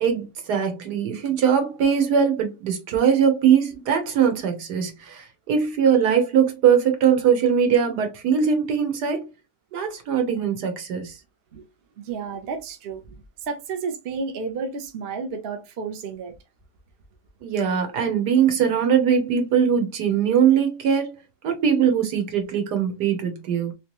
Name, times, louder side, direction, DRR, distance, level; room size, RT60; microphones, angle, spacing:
voice 1, 0.0-9.3 9.7-11.1 17.4-21.1 21.4-23.7, right 7 dB, 70° right, 1.5 m, -21 dB
voice 2, 12.0-13.2 13.4-16.3, right 5 dB, 50° right, 0.7 m, -31 dB
3.2 x 3.1 x 3.0 m
omnidirectional pair, 1.8 m